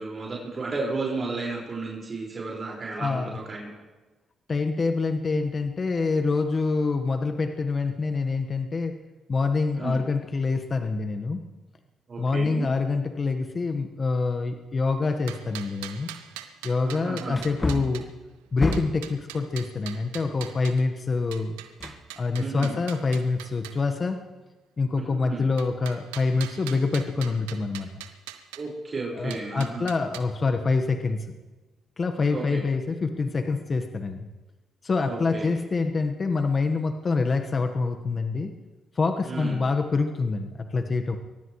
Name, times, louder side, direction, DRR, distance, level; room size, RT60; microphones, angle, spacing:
voice 1, 0.0-3.8 9.7-10.0 12.1-12.7 16.8-17.4 22.4-22.8 24.9-25.4 28.6-29.8 32.3-32.6 35.0-35.6 39.2-39.6, right 3 dB, 45° right, -3 dB, 5.2 m, -33 dB
voice 2, 3.0-3.4 4.5-9.0 9.3-11.4 12.2-16.1 16.6-18.1 18.5-21.6 22.2-24.2 24.8-27.9 29.2-31.2 32.0-34.2 34.8-38.5 38.9-41.2, left 4 dB, 45° left, 6 dB, 1.4 m, -26 dB
sound 1, 15.1-18.0 18.7-20.8 21.3-23.8 25.6-28.6 29.3-30.2, right 13 dB, 90° right, 0.8 m, -42 dB
Wood, 16.0-16.1 17.3-19.1 21.8-22.6 22.9-23.0, left 2 dB, 30° left, 1.6 m, -30 dB
22.5 x 19.0 x 3.2 m, 1.2 s
hypercardioid pair, 45°, 0 cm